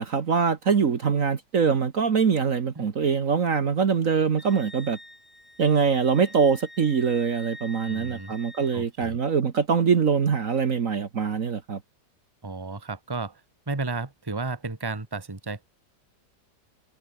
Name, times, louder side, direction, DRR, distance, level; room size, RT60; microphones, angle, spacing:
voice 1, 0.0-5.0 5.6-11.8, right 6 dB, 50° right, 1.7 m, -23 dB
Wind instrument woodwind instrument, 4.4-8.8, left 1 dB, 20° left, 5.6 m, -46 dB
voice 2, 7.8-8.3 8.7-9.2 12.4-13.4 13.7-15.6, right 3 dB, 15° right, 1.7 m, -33 dB
omnidirectional pair, 1.8 m